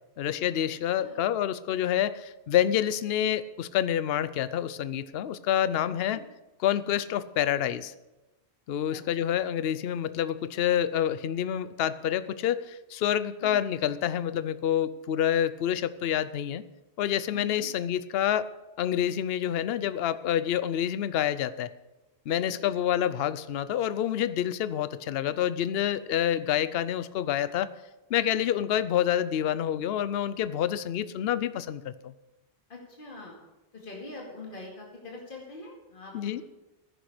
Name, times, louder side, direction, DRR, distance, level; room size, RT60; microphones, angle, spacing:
voice 1, 0.2-6.2 6.6-7.9 8.7-16.6 17.0-18.5 18.8-21.7 22.3-27.7 28.1-32.1 36.1-36.4, left 10 dB, 65° left, 15 dB, 0.8 m, -28 dB
voice 2, 5.9-6.2 8.9-9.0 9.5-9.6 13.4-13.6 17.3-17.7 22.4-22.8 28.3-28.5 32.7-33.3 33.7-36.4, left 2 dB, 50° left, -2 dB, 2.4 m, -44 dB
15.5 x 10.0 x 5.0 m, 1.0 s
omnidirectional pair, 1.1 m